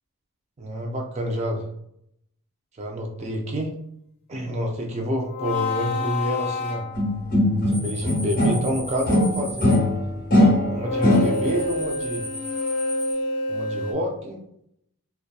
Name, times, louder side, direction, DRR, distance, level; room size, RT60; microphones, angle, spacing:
voice 1, 0.6-1.6 2.8-3.7 4.3-6.9 7.7-9.8 10.7-12.3 13.5-14.4, equal, 30° right, 2 dB, 0.4 m, -28 dB
sound 1, 5.3-7.5 10.7-13.9, left 2 dB, 90° left, 0.5 m, -28 dB
sound 2, 7.0-8.7 9.1-11.6, left 1 dB, 40° left, 1.0 m, -20 dB
sound 3, 7.7-9.7 11.0-13.1, equal, 15° right, 1.3 m, -36 dB
2.6 x 2.1 x 2.2 m, 0.73 s
head